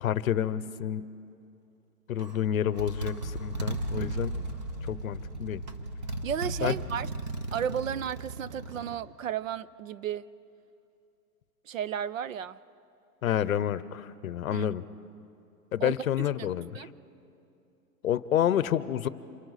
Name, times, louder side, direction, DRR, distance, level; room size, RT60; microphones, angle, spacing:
voice 1, 0.0-1.0 2.1-4.3 4.8-5.6 6.6-6.7 13.2-14.8 15.7-16.9 18.0-19.1, left 10 dB, 60° left, 0.7 m, -29 dB
Motorcycle, 2.2-2.4 2.8-8.9, right 2 dB, 25° right, 0.8 m, -35 dB
voice 2, 6.2-7.1 7.5-10.3 11.7-12.6 14.5-14.7 15.8-15.9 16.7-16.9, right 9 dB, 55° right, 0.5 m, -33 dB
28.0 x 23.0 x 4.1 m
hypercardioid pair, 175°, 47 cm